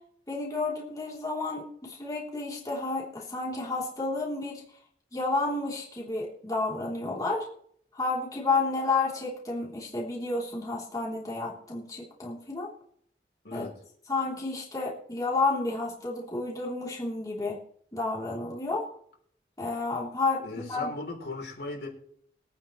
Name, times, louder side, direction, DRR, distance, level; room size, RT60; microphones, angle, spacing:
voice 1, 0.3-4.6 5.1-7.5 7.9-12.7 13.5-13.7 14.1-17.6 17.9-18.9 19.6-20.9, left 3 dB, 20° left, -5 dB, 3.4 m, -31 dB
voice 2, 13.4-13.8 20.4-21.9, left 2 dB, 65° left, 0 dB, 4.0 m, -37 dB
22.5 x 9.5 x 3.2 m, 0.62 s
head